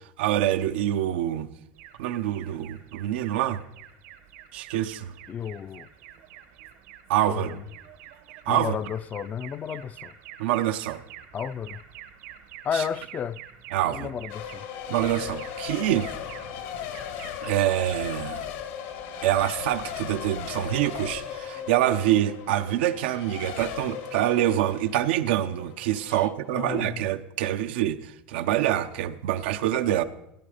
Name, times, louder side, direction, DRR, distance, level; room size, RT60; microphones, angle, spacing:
voice 1, 0.2-1.5 2.0-3.6 4.5-5.1 7.1-7.6 8.5-8.7 10.4-11.0 12.7-12.8 13.7-14.1 14.9-16.1 17.4-18.4 19.2-30.0, right 12 dB, 90° right, 0.8 m, -26 dB
Alarm, 1.8-19.4, right 11 dB, 70° right, 1.3 m, -48 dB
voice 2, 5.3-5.9 7.3-7.6 8.5-10.2 11.3-11.8 12.6-13.4 13.9-14.7 15.2-15.3 26.1-27.1 29.8-30.0, left 8 dB, 25° left, 0.4 m, -33 dB
Race car auto racing / Accelerating revving vroom / Mechanisms, 14.3-26.8, left 8 dB, 80° left, 1.8 m, -37 dB
16.5 x 10.0 x 5.1 m
supercardioid pair, 135°, 6 cm